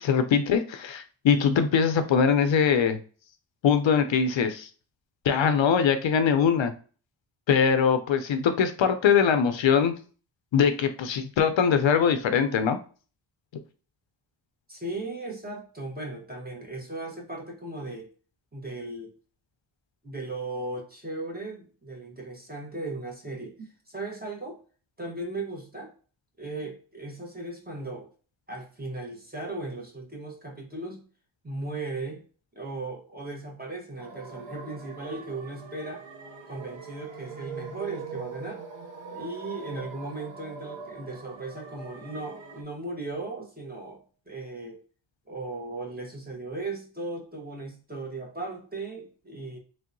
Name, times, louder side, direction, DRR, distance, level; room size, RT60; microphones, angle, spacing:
voice 1, 0.0-3.0 3.6-4.7 5.3-6.7 7.5-9.9 10.5-12.8, left 7 dB, 65° left, 8 dB, 0.5 m, -22 dB
voice 2, 14.7-18.1 18.5-19.1 20.0-24.6 25.0-25.9 26.4-28.1 28.5-31.0 31.4-32.2 32.5-36.0 36.5-38.6 39.1-44.8 45.3-49.6, right 2 dB, 20° right, -1 dB, 1.0 m, -37 dB
sound 1, 34.0-42.6, right 5 dB, 65° right, 0.7 m, -42 dB
3.3 x 2.7 x 2.5 m, 0.38 s
wide cardioid pair, 120°, 50 cm